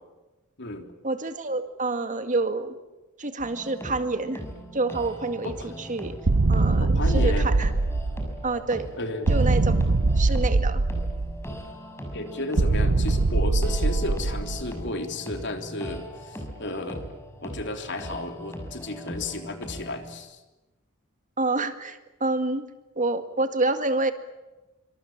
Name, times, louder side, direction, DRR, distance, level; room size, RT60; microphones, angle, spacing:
voice 1, 1.0-2.7 3.2-4.4 4.7-6.2 6.5-7.7 8.4-8.9 9.3-9.7 10.0-10.8 21.4-22.7 23.0-24.1, right 2 dB, 40° right, 8 dB, 2.0 m, -27 dB
sound 1, 3.4-20.2, equal, 10° left, 6.0 m, -39 dB
sound 2, 6.3-8.6 9.3-11.6 12.6-14.8, right 3 dB, 70° right, 0.8 m, -22 dB
voice 2, 6.8-7.5 9.0-9.3 12.1-17.1 17.4-20.4, left 2 dB, 60° left, 6 dB, 3.5 m, -33 dB
26.5 x 25.0 x 7.5 m, 1.1 s
head